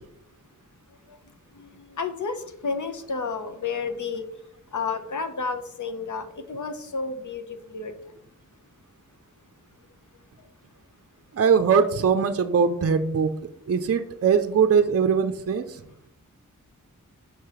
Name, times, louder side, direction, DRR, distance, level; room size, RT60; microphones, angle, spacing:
voice 1, 1.6-4.3 4.7-7.9, left 4 dB, 65° left, 7 dB, 0.8 m, -31 dB
voice 2, 11.3-13.3 13.7-15.8, right 6 dB, 45° right, 8 dB, 0.5 m, -21 dB
5.4 x 4.6 x 4.9 m, 0.74 s
wide cardioid pair, 90°, 33 cm